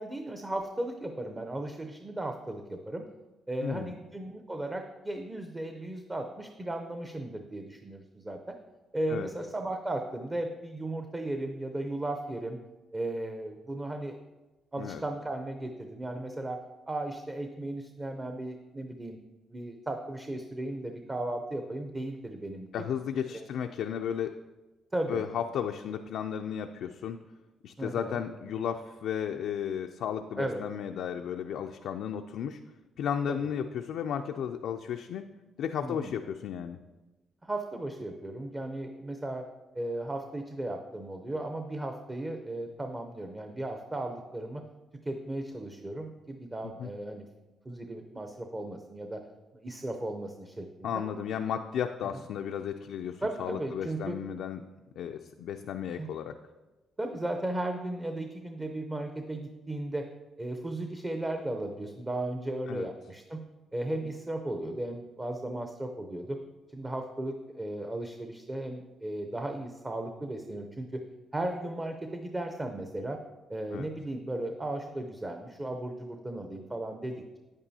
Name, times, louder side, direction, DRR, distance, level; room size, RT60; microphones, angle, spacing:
voice 1, 0.0-3.1 3.5-8.5 8.9-12.6 12.9-14.2 14.7-16.6 16.9-19.2 19.5-22.7 23.3-23.5 24.9-25.2 27.8-28.2 30.4-30.6 33.3-33.4 35.8-36.1 37.4-39.4 39.7-44.6 45.0-47.3 47.6-49.2 49.5-50.9 53.2-54.2 56.0-56.1 57.0-60.1 60.4-63.4 63.7-66.4 66.7-71.0 71.3-73.2 73.5-77.4, right 1 dB, 20° right, 4 dB, 0.6 m, -36 dB
voice 2, 22.7-24.4 25.1-27.2 27.6-32.6 33.0-35.3 35.6-36.8 46.6-46.9 50.8-54.6 55.0-56.4 62.7-62.9 73.7-73.9, left 8 dB, 80° left, 5 dB, 0.3 m, -34 dB
9.1 x 8.8 x 2.8 m, 1.1 s
cardioid pair, 90°, 0 cm